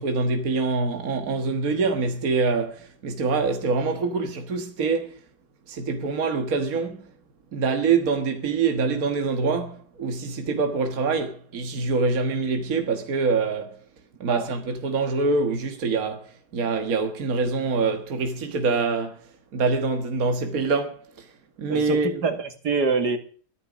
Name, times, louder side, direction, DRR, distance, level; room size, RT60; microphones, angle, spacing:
voice 1, 0.0-5.1 5.7-7.1 7.5-13.8 14.2-21.3 21.6-22.2, right 4 dB, 60° right, 1.9 m, -25 dB
voice 2, 21.7-23.2, right 4 dB, 80° right, 2.6 m, -25 dB
14.0 x 13.0 x 6.1 m
omnidirectional pair, 1.7 m